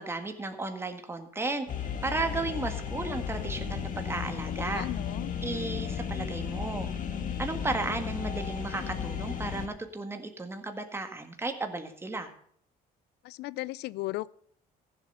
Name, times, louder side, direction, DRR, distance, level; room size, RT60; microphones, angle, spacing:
voice 1, 0.0-1.7 2.0-4.9 5.4-6.9 7.4-12.3, right 3 dB, 15° right, 1.8 m, -34 dB
sound 1, 1.7-9.7, left 7 dB, 50° left, 1.9 m, -34 dB
voice 2, 4.6-5.3 13.2-14.3, left 19 dB, 80° left, 0.4 m, -36 dB
15.0 x 7.7 x 6.8 m
cardioid pair, 110°, 17 cm